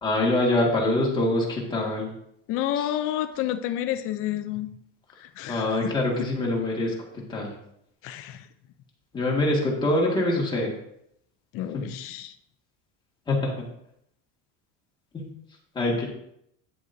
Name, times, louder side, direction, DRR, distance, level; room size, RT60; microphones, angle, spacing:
voice 1, 0.0-2.1 2.8-2.9 5.5-6.9 7.3-7.5 9.1-10.7 11.7-11.9 13.3-13.7 15.1-15.3 15.7-16.0, left 1 dB, 15° left, -3 dB, 2.0 m, -24 dB
voice 2, 2.5-4.7 5.2-5.9 8.0-8.4 11.5-12.3, left 12 dB, 40° left, 9 dB, 0.6 m, -30 dB
9.3 x 8.0 x 2.7 m, 0.75 s
cardioid pair, 165°, 34 cm